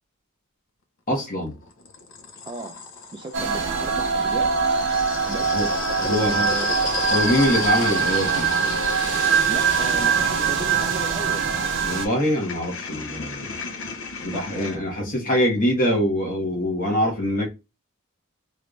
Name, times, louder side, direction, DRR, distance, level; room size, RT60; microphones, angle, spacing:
sound 1, 1.1-3.5 4.3-14.8, left 4 dB, 60° left, 0.6 m, -34 dB
voice 1, 1.1-1.5 5.5-5.7 6.0-6.5 7.1-8.5 11.8-13.5 14.2-17.5, equal, 40° left, 1.2 m, -23 dB
voice 2, 2.5-2.8 3.1-4.5 5.3-5.7 6.1-6.7 9.5-11.4 14.2-15.1, right 2 dB, 20° right, 0.3 m, -35 dB
sound 2, 3.3-12.1, right 6 dB, 55° right, 0.7 m, -23 dB
3.2 x 2.5 x 3.0 m
head